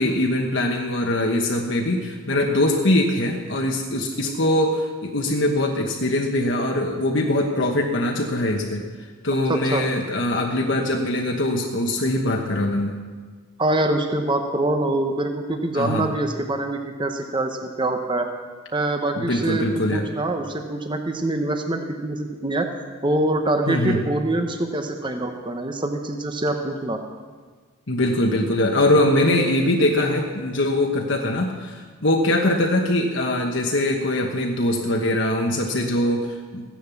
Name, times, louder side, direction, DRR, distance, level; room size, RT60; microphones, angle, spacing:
voice 1, 0.0-13.0 15.7-16.1 19.2-20.1 23.7-24.0 27.9-36.7, left 1 dB, 60° left, 1 dB, 1.2 m, -22 dB
voice 2, 9.5-9.8 13.6-18.3 18.7-22.7 23.0-27.0, right 2 dB, 20° right, 5 dB, 1.0 m, -24 dB
15.0 x 10.5 x 7.1 m, 1.5 s
head